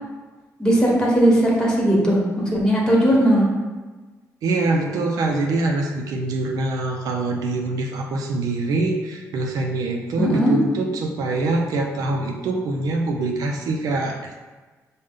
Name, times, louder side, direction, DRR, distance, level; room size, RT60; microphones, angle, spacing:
voice 1, 0.6-3.4 10.2-10.5, equal, 10° left, -3 dB, 1.2 m, -18 dB
voice 2, 4.4-14.4, right 2 dB, 80° right, 1 dB, 0.5 m, -24 dB
5.0 x 2.2 x 3.6 m, 1.3 s
cardioid pair, 90°, 6 cm